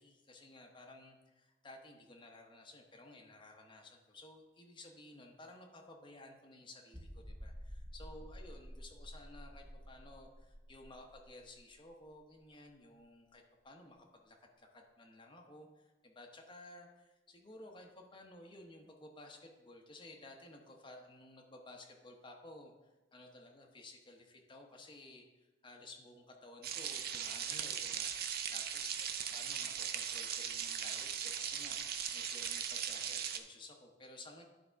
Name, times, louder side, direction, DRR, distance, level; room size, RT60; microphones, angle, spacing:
voice 1, 0.0-14.0 14.2-29.1 29.3-34.4, left 2 dB, 25° left, 2 dB, 0.9 m, -55 dB
sound 1, 6.9-12.4 12.7-12.8 13.3-13.4, equal, 15° right, 0.7 m, -51 dB
sound 2, 26.6-33.4, right 8 dB, 55° right, 0.5 m, -39 dB
10.5 x 3.6 x 4.5 m, 1.2 s
head